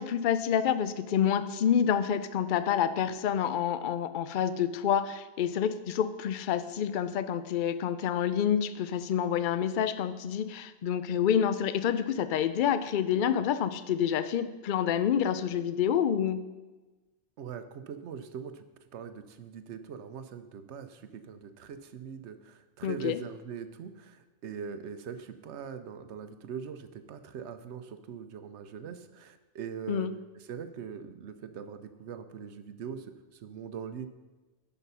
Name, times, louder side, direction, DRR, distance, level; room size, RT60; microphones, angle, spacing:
voice 1, 0.0-16.5 22.8-23.2 29.9-30.1, left 9 dB, 55° left, 13 dB, 0.6 m, -28 dB
voice 2, 17.4-18.7 18.9-34.1, right 7 dB, 75° right, 10 dB, 1.0 m, -42 dB
11.0 x 5.7 x 5.5 m, 1.2 s
omnidirectional pair, 1.2 m